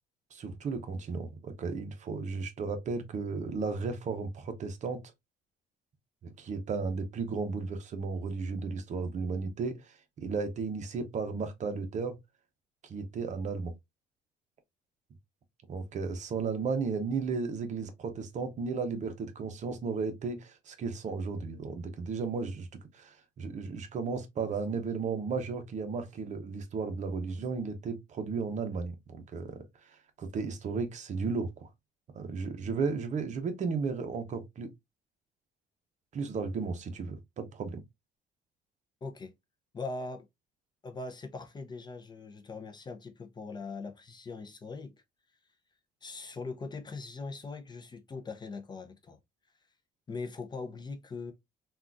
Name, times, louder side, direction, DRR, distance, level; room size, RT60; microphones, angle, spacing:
voice 1, 0.3-5.0 6.2-12.2 12.8-13.7 15.7-22.7 22.9-31.7 32.1-34.7 36.1-37.8, right 4 dB, 45° right, 0.7 m, -34 dB
voice 2, 39.0-39.3 39.7-40.3 40.8-45.0 46.0-49.2 50.1-51.3, left 3 dB, 25° left, 0.5 m, -41 dB
3.7 x 2.4 x 2.4 m
cardioid pair, 110°, 17 cm